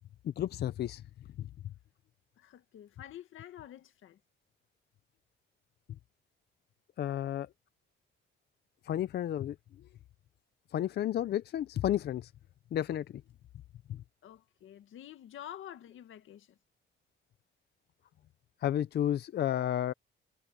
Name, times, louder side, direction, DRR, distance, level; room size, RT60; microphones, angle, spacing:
voice 1, 0.2-1.0 1.4-1.5 7.0-7.5 8.8-9.6 10.7-12.3 12.7-13.0 13.9-14.0 18.6-19.9, left 11 dB, 55° left, 0.5 m, -31 dB
voice 2, 2.4-4.2 14.2-16.6, left 11 dB, 85° left, 1.8 m, -48 dB
wide cardioid pair, 165°, 20 cm